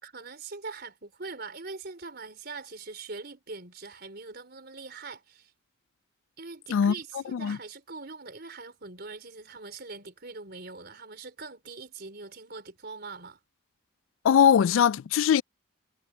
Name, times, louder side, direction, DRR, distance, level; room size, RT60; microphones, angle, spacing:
voice 1, 0.0-5.5 6.4-13.4, right 3 dB, 50° right, 4.1 m, -42 dB
voice 2, 14.2-15.4, left 8 dB, 75° left, 0.3 m, -21 dB
head